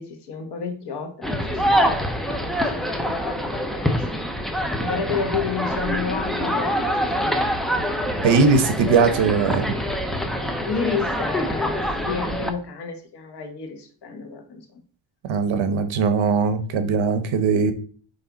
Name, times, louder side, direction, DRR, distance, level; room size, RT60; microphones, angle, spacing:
voice 1, 0.0-4.2 4.8-7.4 10.7-14.8, left 5 dB, 50° left, 4 dB, 1.3 m, -31 dB
sound 1, 1.2-12.5, equal, ahead, 0.5 m, -25 dB
voice 2, 8.2-9.8 15.2-17.7, right 5 dB, 65° right, 9 dB, 1.0 m, -20 dB
5.5 x 4.7 x 3.9 m, 0.43 s
cardioid pair, 165°, 50 cm